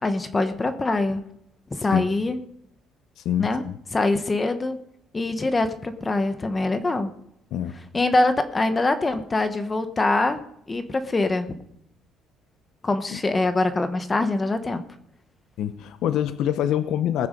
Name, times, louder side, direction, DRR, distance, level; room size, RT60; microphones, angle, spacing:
voice 1, 0.0-1.2 1.7-2.4 3.4-3.6 3.9-4.8 5.1-7.1 7.9-10.4 10.7-11.5 12.8-14.9, left 2 dB, 20° left, 9 dB, 1.0 m, -23 dB
voice 2, 3.2-3.7 7.5-7.7 13.1-13.2 15.6-17.3, left 10 dB, 70° left, 11 dB, 0.8 m, -25 dB
20.5 x 6.8 x 5.2 m, 0.75 s
cardioid pair, 135°, 0 cm